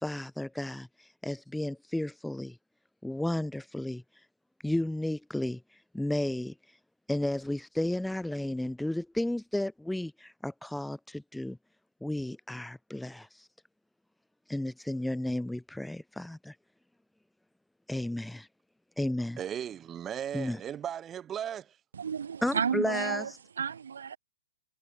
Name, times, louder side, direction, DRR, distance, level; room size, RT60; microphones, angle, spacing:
voice 1, 0.0-2.6 3.0-4.0 4.6-6.5 7.1-11.6 12.0-13.5 14.5-16.6 17.9-18.5 19.0-19.4 20.3-20.6 22.4-23.3, left 1 dB, ahead, 0.6 m, -33 dB
voice 2, 19.4-21.8, right 9 dB, 15° right, 1.8 m, -36 dB
voice 3, 21.9-23.3 23.6-24.2, right 7 dB, 80° right, 3.8 m, -32 dB
hypercardioid pair, 145°, 0 cm